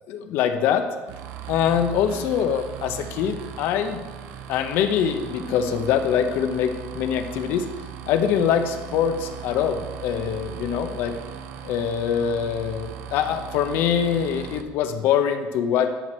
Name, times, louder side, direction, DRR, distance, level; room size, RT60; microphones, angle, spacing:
voice 1, 0.1-0.9 1.5-4.0 4.5-7.7 8.1-11.2 11.6-15.9, left 8 dB, 55° left, 8 dB, 0.8 m, -24 dB
sound 1, 1.1-14.6, right 8 dB, 60° right, 0.7 m, -38 dB
12.5 x 4.4 x 6.1 m, 1.3 s
cardioid pair, 175°, 4 cm